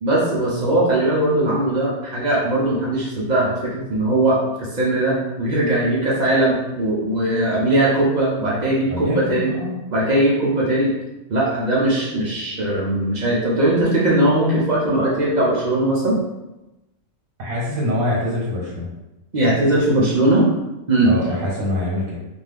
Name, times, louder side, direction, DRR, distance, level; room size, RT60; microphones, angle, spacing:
voice 1, 0.0-9.5 9.9-10.9 11.3-16.2 19.3-20.5 20.9-21.1, right 1 dB, 70° right, -5 dB, 0.4 m, -19 dB
voice 2, 8.9-9.8 17.4-18.9 21.0-22.2, left 1 dB, 85° right, -5 dB, 1.2 m, -24 dB
2.5 x 2.2 x 3.3 m, 0.98 s
omnidirectional pair, 1.4 m